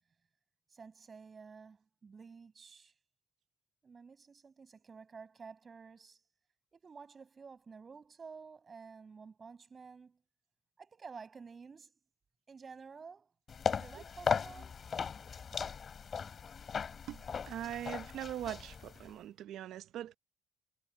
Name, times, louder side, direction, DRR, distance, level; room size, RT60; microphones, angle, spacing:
voice 1, 0.7-2.9 3.8-6.2 6.7-10.2 10.8-11.9 12.5-13.3 13.8-14.8, right 5 dB, 40° right, 6.0 m, -52 dB
sound 1, 13.5-19.1, left 6 dB, 45° left, 3.3 m, -37 dB
voice 2, 17.1-20.2, right 11 dB, 80° right, 0.8 m, -42 dB
cardioid pair, 90°, 0 cm